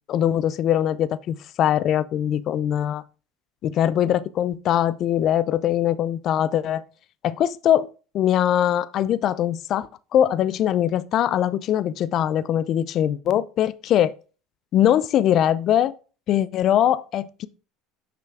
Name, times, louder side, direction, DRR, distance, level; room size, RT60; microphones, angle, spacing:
voice 1, 0.1-3.0 3.6-6.8 7.2-7.9 8.1-14.1 14.7-15.9 16.3-17.5, left 11 dB, 50° left, 0.4 m, -22 dB
6.1 x 5.7 x 3.4 m
supercardioid pair, 110°, 0 cm